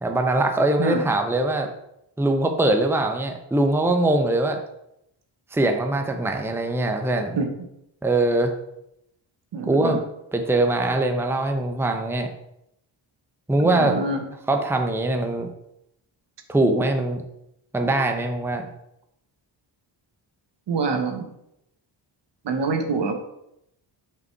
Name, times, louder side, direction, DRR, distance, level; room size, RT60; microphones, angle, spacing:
voice 1, 0.0-1.7 2.2-4.6 5.5-7.4 8.0-8.5 9.6-10.0 10.3-12.3 13.5-14.0 14.5-15.5 16.5-17.2 17.7-18.7, right 2 dB, 5° right, 5 dB, 0.8 m, -22 dB
voice 2, 9.5-10.0 13.6-14.2 20.7-21.3 22.4-23.1, right 4 dB, 65° right, 5 dB, 1.2 m, -25 dB
5.8 x 5.4 x 4.6 m, 0.80 s
cardioid pair, 90°, 46 cm